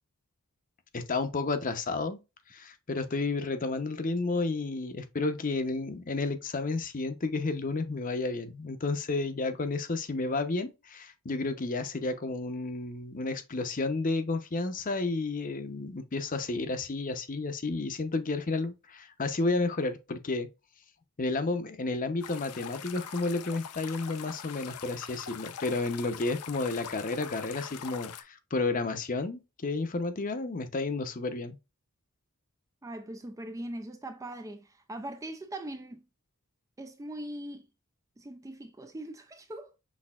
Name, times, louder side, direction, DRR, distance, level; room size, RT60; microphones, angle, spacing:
voice 1, 0.9-2.2 2.5-20.5 21.2-31.6, left 3 dB, 40° left, 0.7 m, -31 dB
sound 1, 22.2-28.2, left 8 dB, 85° left, 0.5 m, -43 dB
voice 2, 32.8-36.0 36.8-37.7 38.2-39.7, right 1 dB, 15° right, 0.3 m, -41 dB
6.2 x 3.3 x 2.3 m
head